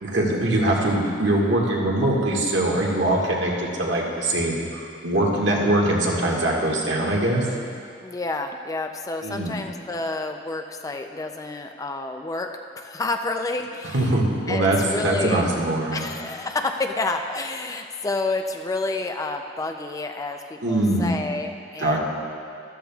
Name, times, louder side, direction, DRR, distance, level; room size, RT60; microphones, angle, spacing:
voice 1, 0.0-7.4 9.2-9.5 13.9-16.1 20.6-21.1 21.8-22.0, right 1 dB, 75° right, -2 dB, 1.7 m, -22 dB
voice 2, 8.0-12.5 12.8-14.1 14.5-15.5 15.9-22.0, left 3 dB, 20° left, 5 dB, 0.4 m, -29 dB
14.0 x 12.5 x 2.3 m, 2.4 s
head